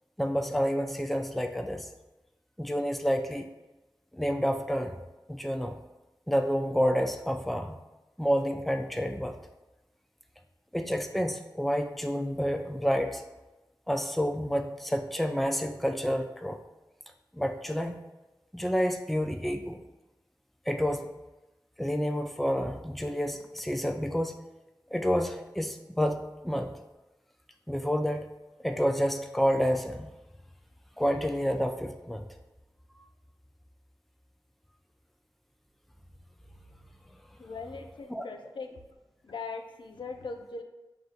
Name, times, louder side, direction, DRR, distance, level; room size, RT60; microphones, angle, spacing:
voice 1, 0.2-1.9 2.6-3.5 4.1-4.9 5.3-5.8 6.3-7.8 8.2-9.3 10.7-13.2 13.9-16.6 17.3-18.0 18.5-19.8 20.7-21.1 21.8-24.3 24.9-26.7 27.7-28.3 28.6-30.1 31.0-32.2 38.1-38.2, equal, ahead, 5 dB, 0.4 m, -29 dB
voice 2, 37.4-38.8 39.2-40.6, left 4 dB, 85° left, 4 dB, 0.4 m, -40 dB
6.1 x 2.6 x 2.4 m, 1.0 s
cardioid pair, 40°, 8 cm